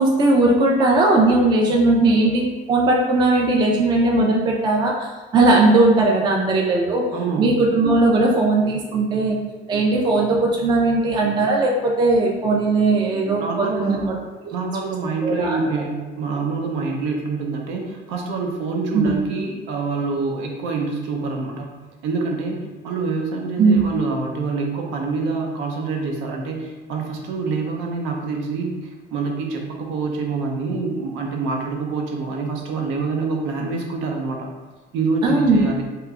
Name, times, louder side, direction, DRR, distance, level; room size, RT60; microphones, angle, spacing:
voice 1, 0.0-7.0 7.4-9.4 9.7-14.1 15.2-15.6 18.9-19.2 23.6-23.9 35.2-35.7, right 2 dB, 25° right, -1 dB, 0.3 m, -18 dB
voice 2, 7.1-7.6 13.4-14.2 14.5-21.7 22.0-34.5 34.9-35.8, right 4 dB, 85° right, 1 dB, 0.7 m, -26 dB
2.9 x 2.2 x 3.6 m, 1.2 s
cardioid pair, 160°, 19 cm